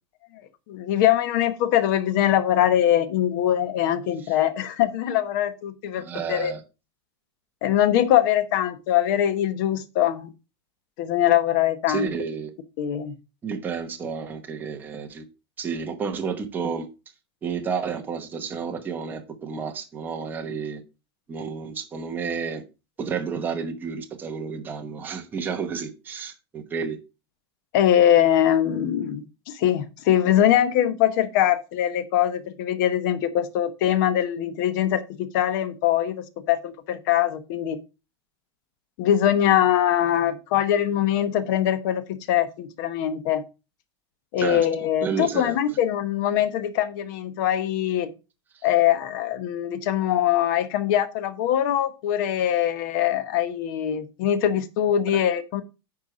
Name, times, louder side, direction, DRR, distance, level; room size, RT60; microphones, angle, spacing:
voice 1, 0.7-6.5 7.6-10.3 11.0-12.1 12.8-13.2 27.7-37.8 39.0-43.4 44.3-48.1 48.6-55.6, left 11 dB, 45° left, 1.1 m, -22 dB
voice 2, 6.0-6.6 11.9-12.5 13.4-15.2 15.6-16.9 17.4-20.8 21.3-22.6 23.0-27.0 44.4-44.7 45.0-45.6, right 6 dB, 15° right, 1.0 m, -31 dB
9.6 x 4.6 x 5.0 m
supercardioid pair, 160°, 14 cm